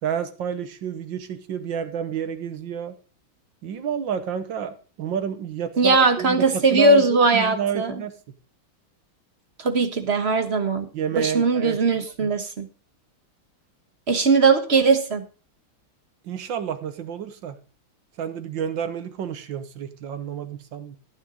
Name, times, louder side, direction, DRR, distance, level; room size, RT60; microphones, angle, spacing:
voice 1, 0.0-3.0 3.6-8.1 10.9-11.8 12.2-12.3 16.2-17.6 18.2-21.0, right 8 dB, 65° right, 11 dB, 1.7 m, -29 dB
voice 2, 5.8-7.9 9.6-10.9 11.1-12.7 14.1-15.2, right 3 dB, 35° right, 8 dB, 1.2 m, -20 dB
15.0 x 9.3 x 3.9 m, 0.35 s
omnidirectional pair, 2.4 m